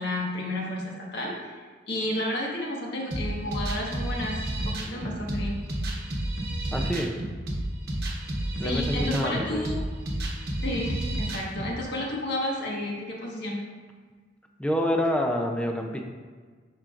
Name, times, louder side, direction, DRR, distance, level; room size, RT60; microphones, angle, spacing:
voice 1, 0.0-1.6 1.9-5.6 8.6-9.8 10.6-13.6, left 1 dB, 60° left, -3 dB, 1.4 m, -31 dB
sound 1, 3.1-11.7, right 1 dB, 55° right, 1.1 m, -31 dB
voice 2, 6.7-7.1 8.6-9.7 14.6-16.0, equal, 5° left, 2 dB, 0.5 m, -27 dB
10.5 x 4.4 x 2.5 m, 1.5 s
head